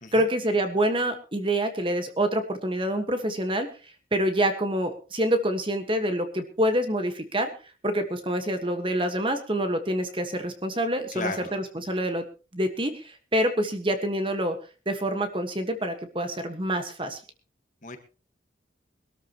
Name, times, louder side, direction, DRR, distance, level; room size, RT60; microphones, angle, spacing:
voice 1, 0.1-3.7 4.1-7.5 7.8-12.2 12.5-14.6 14.8-17.2, right 1 dB, 25° right, 7 dB, 1.5 m, -26 dB
voice 2, 11.1-11.5 17.8-18.0, left 3 dB, 40° left, 7 dB, 1.6 m, -33 dB
22.0 x 13.0 x 3.0 m, 0.35 s
head